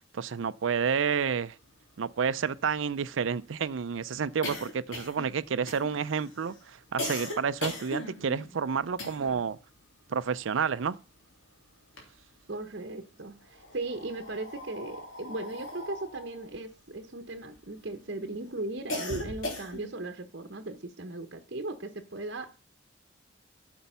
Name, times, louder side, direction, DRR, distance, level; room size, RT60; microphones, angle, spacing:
voice 1, 0.0-1.5 2.0-9.6 10.1-11.0, right 6 dB, 80° right, 0.5 m, -30 dB
sound 1, 1.6-1.7 2.0-9.5 9.8-11.4 11.7-12.7 13.4-17.9 18.3-20.0, left 1 dB, 85° left, 3.3 m, -39 dB
voice 2, 12.5-22.6, right 2 dB, 55° right, 1.0 m, -37 dB
9.5 x 7.0 x 5.6 m
head